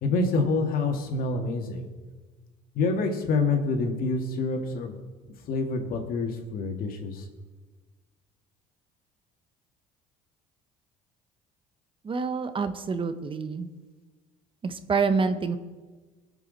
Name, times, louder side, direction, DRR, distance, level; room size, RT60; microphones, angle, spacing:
voice 1, 0.0-1.8 2.7-4.9 5.5-7.3, left 3 dB, 60° left, 4 dB, 2.1 m, -27 dB
voice 2, 12.0-13.7 14.6-15.6, right 5 dB, 30° right, 10 dB, 1.0 m, -27 dB
20.0 x 7.2 x 4.1 m, 1.3 s
supercardioid pair, 80°, 17 cm